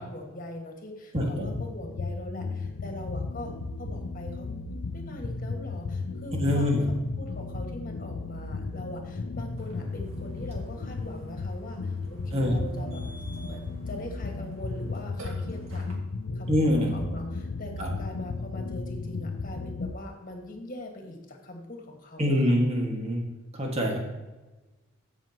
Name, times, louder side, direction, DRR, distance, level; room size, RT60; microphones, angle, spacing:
voice 1, 0.0-3.5 3.8-4.5 4.9-13.0 13.4-15.9 16.3-22.5, left 1 dB, 40° left, 2 dB, 1.7 m, -41 dB
voice 2, 1.1-1.4 6.4-6.9 12.3-12.6 16.5-16.9 17.8-17.9 22.2-23.2 23.5-24.0, left 1 dB, 30° right, 0 dB, 1.8 m, -24 dB
sound 1, 1.2-19.9, left 3 dB, 80° left, 0.5 m, -35 dB
Burping eructation, 9.6-15.9, right 1 dB, 65° right, 2.1 m, -47 dB
sound 2, 17.0-19.2, right 2 dB, ahead, 0.8 m, -45 dB
14.5 x 6.2 x 2.9 m, 1.1 s
head